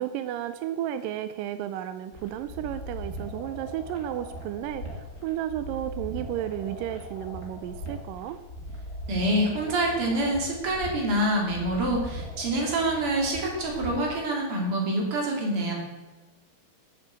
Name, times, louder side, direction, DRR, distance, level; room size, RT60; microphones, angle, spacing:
voice 1, 0.0-8.4, right 12 dB, 90° right, 11 dB, 1.9 m, -33 dB
sound 1, 2.1-14.1, equal, 25° left, 2.2 m, -40 dB
voice 2, 9.1-15.7, right 1 dB, 40° right, 0 dB, 3.2 m, -26 dB
9.6 x 7.5 x 7.9 m, 1.2 s
omnidirectional pair, 4.5 m